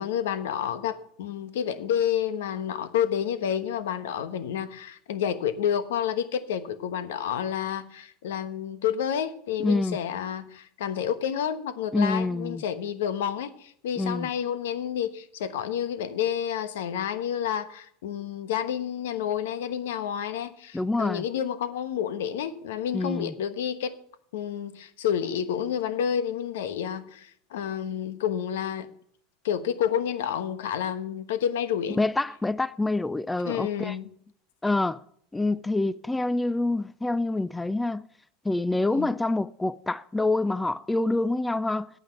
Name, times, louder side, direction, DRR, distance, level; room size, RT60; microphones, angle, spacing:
voice 1, 0.0-23.9 24.3-28.9 29.4-32.0 33.4-34.0 38.9-39.1, left 9 dB, 85° left, 1.1 m, -29 dB
voice 2, 9.6-10.0 11.9-12.6 14.0-14.3 20.7-21.3 22.9-23.3 32.0-34.0 34.6-35.0 35.3-38.1 38.4-41.9, left 2 dB, 10° left, 0.4 m, -26 dB
9.0 x 8.3 x 7.8 m
supercardioid pair, 120°, 0 cm